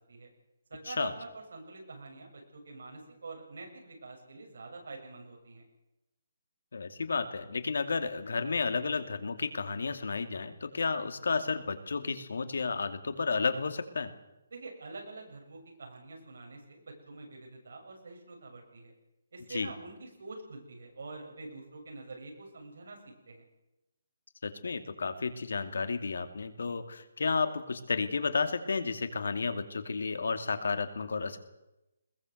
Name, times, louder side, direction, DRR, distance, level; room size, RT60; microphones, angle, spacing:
voice 1, 0.7-5.6 14.5-18.9 19.3-23.4, right 3 dB, 65° right, 1 dB, 7.5 m, -46 dB
voice 2, 6.7-14.1 19.5-19.7 24.4-31.4, left 4 dB, 70° left, 9 dB, 2.6 m, -32 dB
21.0 x 20.5 x 8.0 m, 0.93 s
hypercardioid pair, 175°, 0 cm